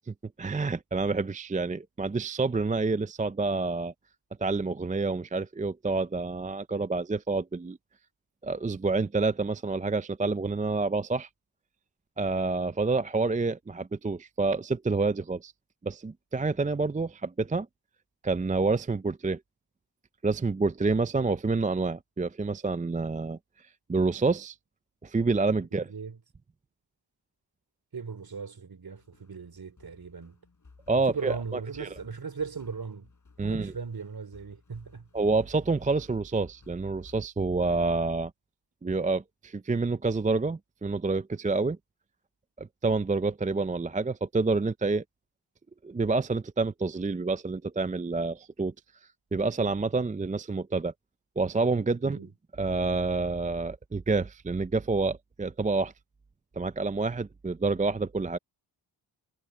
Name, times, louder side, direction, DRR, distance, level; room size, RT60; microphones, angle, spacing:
voice 1, 0.1-3.9 4.4-7.8 8.4-11.3 12.2-15.5 15.8-17.7 18.2-19.4 20.2-23.4 23.9-24.6 25.0-25.9 30.9-31.9 33.4-33.7 35.1-38.3 38.8-41.8 42.6-45.0 45.8-48.7 49.3-50.9 51.4-52.2 52.6-55.9 56.6-58.4, right 3 dB, 15° right, 0.5 m, -28 dB
voice 2, 25.7-26.2 27.9-30.4 30.9-33.1 33.4-35.1 52.0-52.3, right 5 dB, 45° right, 3.1 m, -38 dB
sound 1, 29.0-37.2, left 4 dB, 35° left, 5.5 m, -58 dB
cardioid pair, 70°, 48 cm